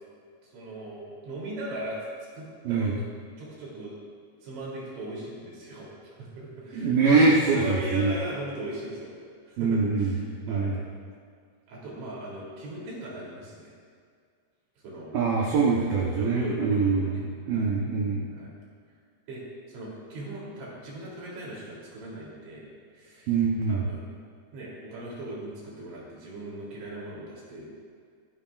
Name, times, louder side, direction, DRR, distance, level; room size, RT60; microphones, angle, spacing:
voice 1, 0.4-2.0 2.4-3.0 3.4-4.0 4.4-7.0 7.5-9.2 9.5-10.8 11.7-13.7 14.8-15.2 16.1-17.8 18.3-18.5 19.3-19.4 19.7-23.4 23.7-24.0 24.5-27.7, right 1 dB, 85° right, -5 dB, 5.6 m, -38 dB
voice 2, 6.7-8.2 9.6-10.2 10.5-10.8 15.1-17.2 17.5-18.3 23.3-23.8, right 4 dB, 70° right, -3 dB, 2.4 m, -23 dB
27.5 x 9.5 x 2.5 m, 2.1 s
omnidirectional pair, 5.1 m